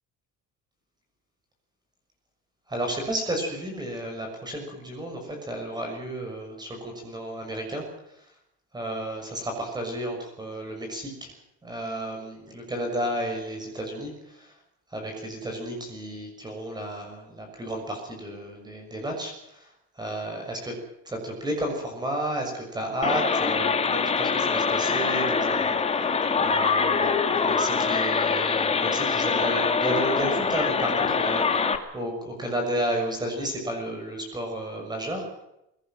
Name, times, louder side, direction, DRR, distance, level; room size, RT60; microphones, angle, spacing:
voice 1, 2.7-7.9 8.7-11.3 11.6-14.5 14.9-20.8 21.0-25.8 26.4-35.4, right 1 dB, 10° right, 2 dB, 6.4 m, -32 dB
sound 1, 23.0-31.8, left 5 dB, 20° left, 2.0 m, -24 dB
23.5 x 18.5 x 7.6 m, 0.83 s
cardioid pair, 160°, 34 cm